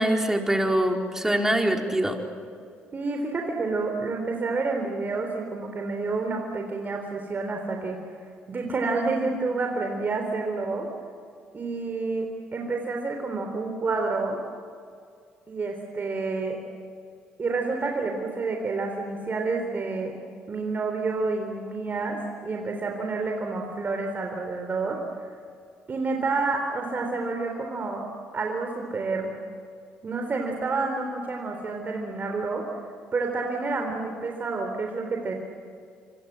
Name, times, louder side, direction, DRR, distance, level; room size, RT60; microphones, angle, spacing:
voice 1, 0.0-2.2, right 1 dB, 10° right, 2 dB, 4.6 m, -23 dB
voice 2, 2.9-8.0 8.5-10.9 11.5-14.4 15.5-16.6 17.4-20.1 20.5-25.0 25.9-28.1 28.3-29.3 30.0-32.8 33.1-35.3, right 3 dB, 40° right, 2 dB, 3.9 m, -29 dB
26.0 x 25.5 x 7.8 m, 2.2 s
supercardioid pair, 60°, 5 cm